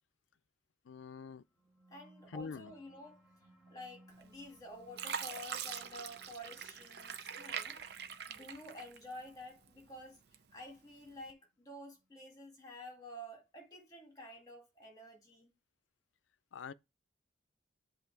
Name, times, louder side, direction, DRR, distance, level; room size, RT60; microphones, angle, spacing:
voice 1, 0.9-1.4 2.3-2.7 16.5-16.7, left 5 dB, 85° left, 0.4 m, -45 dB
sound 1, 1.4-12.4, right 1 dB, 5° right, 4.6 m, -65 dB
voice 2, 1.9-3.3 3.7-10.2 10.5-15.5, left 1 dB, 20° left, 2.0 m, -50 dB
Fill (with liquid), 4.2-4.6 5.0-9.4 9.8-10.6 11.1-11.3, right 7 dB, 60° right, 0.6 m, -43 dB
8.1 x 2.8 x 4.6 m
head